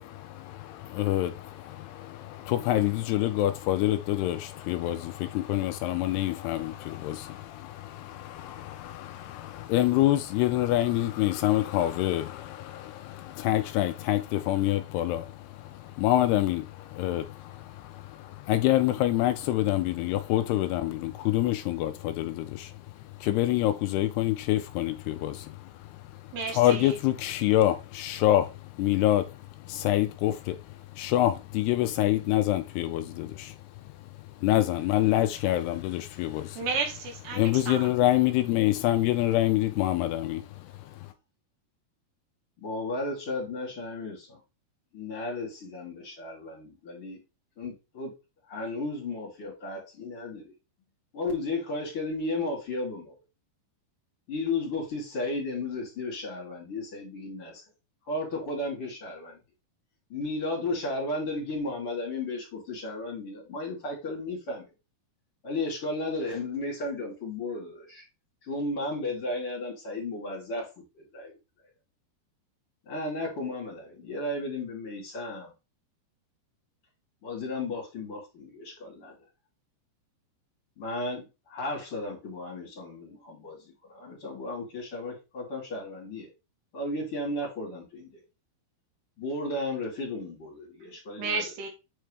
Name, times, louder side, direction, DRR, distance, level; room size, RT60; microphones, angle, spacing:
voice 1, 0.0-36.6 37.3-41.1, left 14 dB, 80° left, 2.5 m, -27 dB
voice 2, 26.3-27.0 36.6-37.9 91.2-91.7, right 4 dB, 80° right, 3.8 m, -32 dB
voice 3, 42.6-44.4 44.9-47.2 47.6-48.1 48.5-50.5 51.1-53.1 54.3-57.6 58.1-59.4 60.1-64.7 65.4-68.0 68.4-71.3 72.9-75.5 77.2-79.1 80.8-83.6 83.8-86.3 86.7-88.2 89.2-91.4, left 2 dB, 35° left, 3.6 m, -34 dB
8.4 x 4.6 x 3.3 m
omnidirectional pair, 4.8 m